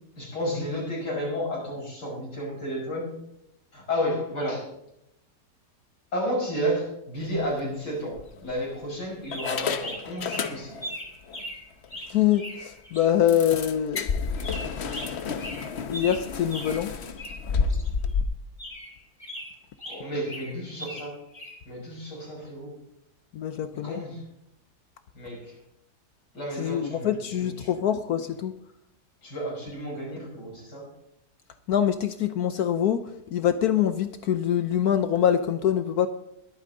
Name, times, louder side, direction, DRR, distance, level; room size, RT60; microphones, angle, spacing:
voice 1, 0.2-3.2 3.7-4.8 6.1-10.8 19.9-21.2 21.6-22.7 23.7-24.2 25.1-25.6 26.3-27.8 29.2-30.9, equal, 90° left, -3 dB, 6.6 m, -32 dB
sound 1, 7.3-7.5 8.2-8.8 9.3-11.0 11.3-11.4 11.8-11.9 12.3-12.4 13.3-18.2, left 5 dB, 50° left, 1.0 m, -31 dB
sound 2, 9.2-13.1 14.4-16.9 17.2-18.1 18.6-21.6, equal, 25° left, 2.6 m, -40 dB
voice 2, 12.1-14.1 15.9-16.9 23.3-24.0 26.6-28.5 31.7-33.0 33.3-36.1, left 10 dB, 70° left, 10 dB, 1.2 m, -24 dB
21.5 x 8.8 x 3.8 m, 0.79 s
omnidirectional pair, 1.8 m